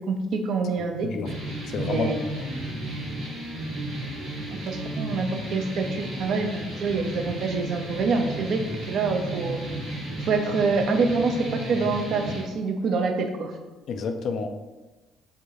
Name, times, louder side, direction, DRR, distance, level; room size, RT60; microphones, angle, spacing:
voice 1, 0.1-1.1 1.8-2.2 4.7-8.6 8.9-9.6 10.3-13.5, right 4 dB, 55° right, 4 dB, 0.5 m, -26 dB
sound 1, 1.2-12.4, right 1 dB, 75° right, 1.0 m, -34 dB
voice 2, 1.7-2.5 13.9-14.5, left 4 dB, 55° left, 6 dB, 0.4 m, -29 dB
5.2 x 2.7 x 2.4 m, 1.1 s
figure-of-eight pair, 45°, 0 cm